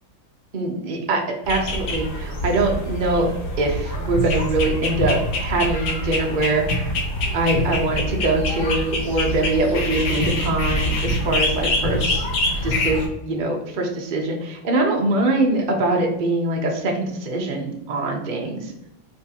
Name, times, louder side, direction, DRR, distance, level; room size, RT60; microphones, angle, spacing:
voice 1, 0.5-1.2 1.5-7.0 7.3-18.7, right 2 dB, 65° right, 1 dB, 0.4 m, -23 dB
sound 1, 1.4-13.1, left 1 dB, 60° left, 1.5 m, -25 dB
4.2 x 3.6 x 2.8 m, 0.86 s
omnidirectional pair, 2.1 m